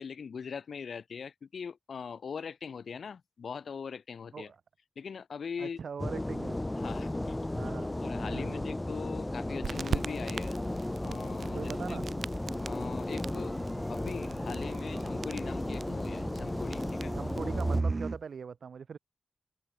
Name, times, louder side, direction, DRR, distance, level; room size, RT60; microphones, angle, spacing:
voice 1, 0.0-4.5 5.0-5.8 6.7-7.4 8.0-10.6 11.0-12.0 12.6-13.6 13.9-17.1, left 6 dB, 75° left, 6.0 m, -41 dB
voice 2, 5.6-6.6 7.5-7.9 8.2-8.6 11.5-12.1 17.1-19.0, right 6 dB, 75° right, 1.5 m, -41 dB
sound 1, 6.0-17.8, left 1 dB, 15° left, 1.5 m, -35 dB
Turntable intro, 9.6-17.8, right 5 dB, 60° right, 1.2 m, -41 dB
sound 2, 13.3-18.2, right 3 dB, 35° right, 2.0 m, -37 dB
wide cardioid pair, 155°, 0 cm